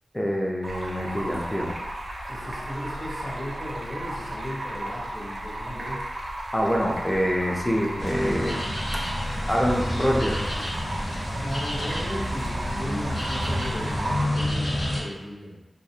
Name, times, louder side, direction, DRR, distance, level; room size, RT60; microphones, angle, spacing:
voice 1, 0.1-1.7 6.5-8.8 9.4-10.4, equal, 10° left, -1 dB, 0.4 m, -25 dB
Stream, 0.6-14.2, right 1 dB, 70° right, 0.4 m, -35 dB
voice 2, 2.3-6.0 11.3-15.6, equal, 75° left, -8 dB, 1.0 m, -36 dB
sound 1, 8.0-15.0, left 1 dB, 50° left, 0.8 m, -29 dB
2.4 x 2.1 x 2.7 m, 1.0 s
wide cardioid pair, 70°, 0 cm